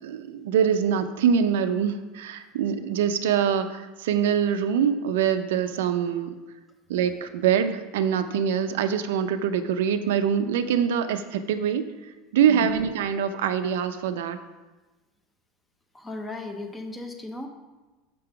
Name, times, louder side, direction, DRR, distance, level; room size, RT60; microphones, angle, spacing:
voice 1, 0.0-6.4 6.9-11.8 12.3-14.4, right 8 dB, 90° right, 9 dB, 0.5 m, -24 dB
voice 2, 12.5-12.8 15.9-17.5, left 2 dB, 10° left, 5 dB, 0.6 m, -36 dB
6.6 x 3.8 x 5.7 m, 1.2 s
supercardioid pair, 155°, 0 cm